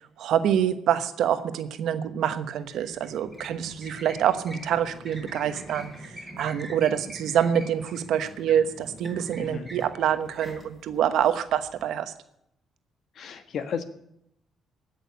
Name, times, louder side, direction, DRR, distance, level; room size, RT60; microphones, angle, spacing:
voice 1, 0.2-12.1, right 9 dB, 75° right, 10 dB, 1.1 m, -26 dB
sound 1, 2.5-11.9, equal, 5° left, 4.4 m, -44 dB
voice 2, 9.4-9.7 13.1-13.8, left 7 dB, 65° left, 9 dB, 1.5 m, -33 dB
16.5 x 6.5 x 9.5 m, 0.77 s
cardioid pair, 90°, 0 cm